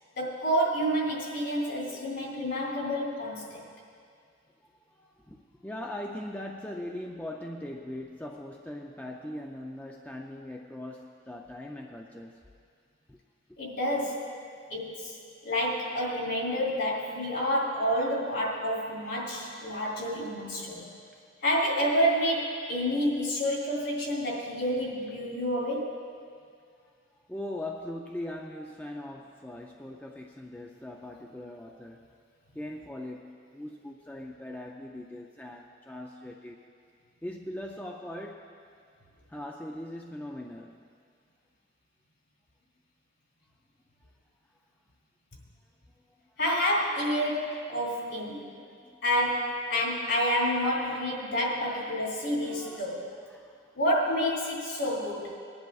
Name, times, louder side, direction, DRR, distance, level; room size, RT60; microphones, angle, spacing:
voice 1, 0.2-3.6 13.6-14.3 14.7-15.2 15.4-20.9 21.4-26.0 46.4-48.5 49.0-53.1 53.7-55.4, equal, 60° left, -2 dB, 2.9 m, -29 dB
voice 2, 5.0-12.4 13.1-13.2 20.7-20.9 27.3-32.1 32.5-36.6 37.2-38.5 39.3-40.8 47.7-48.2 48.6-49.0 51.2-51.3 52.4-52.9 53.3-53.6, left 1 dB, 10° left, 0 dB, 0.4 m, -40 dB
22.0 x 10.5 x 2.4 m, 2.2 s
head